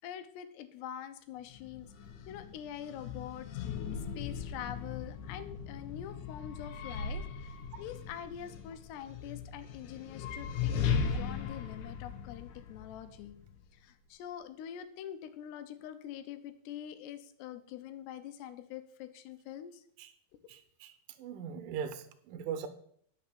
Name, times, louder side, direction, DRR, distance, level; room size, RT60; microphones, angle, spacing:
voice 1, 0.0-1.9 2.3-3.5 4.2-13.4 13.8-19.8, left 10 dB, 90° left, 11 dB, 3.0 m, -45 dB
sound 1, 1.5-13.6, left 6 dB, 75° left, 1.9 m, -38 dB
voice 2, 20.5-20.9 21.2-22.7, right 7 dB, 70° right, 9 dB, 2.3 m, -40 dB
10.5 x 6.3 x 6.8 m, 0.64 s
omnidirectional pair, 4.7 m